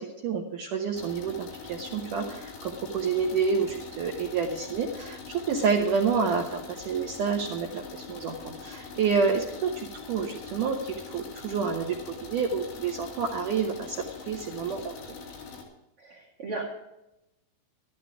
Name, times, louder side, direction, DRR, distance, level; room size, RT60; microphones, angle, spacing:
voice 1, 0.0-14.9, right 5 dB, 70° right, 1 dB, 2.0 m, -29 dB
sound 1, 0.9-15.6, left 5 dB, 80° left, 5.0 m, -43 dB
voice 2, 16.0-16.7, right 3 dB, 45° right, -2 dB, 2.0 m, -36 dB
13.5 x 12.5 x 4.8 m, 0.90 s
omnidirectional pair, 5.1 m